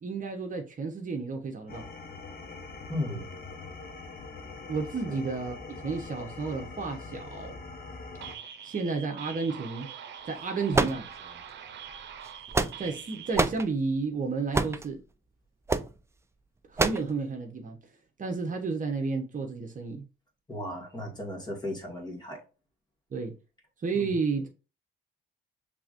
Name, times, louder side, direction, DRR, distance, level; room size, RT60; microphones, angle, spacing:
voice 1, 0.0-1.8 4.7-5.6 5.8-7.6 8.6-9.9 10.2-11.1 12.8-15.0 16.7-17.8 18.2-20.1 23.1-23.3 23.8-24.5, right 4 dB, 40° right, 1.0 m, -31 dB
sound 1, 1.7-8.3, left 3 dB, 50° left, 1.0 m, -43 dB
voice 2, 2.9-3.3 5.1-5.2 20.5-22.4 23.9-24.1, left 1 dB, 20° left, 1.8 m, -35 dB
sound 2, 8.2-13.4, right 8 dB, 65° right, 0.8 m, -44 dB
sound 3, 10.7-11.5 12.2-13.0 13.4-13.7 14.5-14.9 15.7-15.9 16.8-17.1, right 3 dB, 15° right, 0.4 m, -26 dB
5.9 x 3.4 x 2.6 m
cardioid pair, 90°, 20 cm